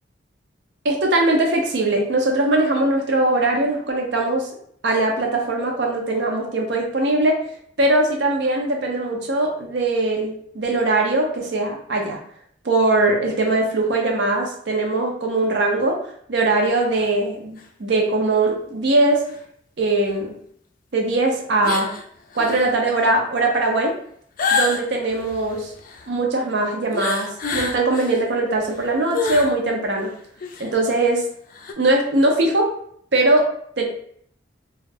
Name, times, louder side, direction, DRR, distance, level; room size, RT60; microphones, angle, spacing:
voice 1, 0.8-4.5 4.8-7.4 7.8-12.2 12.6-16.0 16.3-19.2 19.8-20.3 20.9-21.9 22.4-23.9 24.5-25.7 26.1-30.1 30.6-31.2 31.8-32.7 33.1-33.5 33.8-33.9, right 2 dB, 65° right, 1 dB, 0.6 m, -21 dB
sound 1, 16.9-17.1 17.6-17.7 19.3-19.4 20.1-20.2 21.6-22.0 22.3-22.8 24.4-26.1 26.9-28.3 28.6-29.5 30.0-30.1 30.4-30.7 31.5-31.7, left 4 dB, 45° left, 0.3 m, -27 dB
2.3 x 2.0 x 3.3 m, 0.64 s
head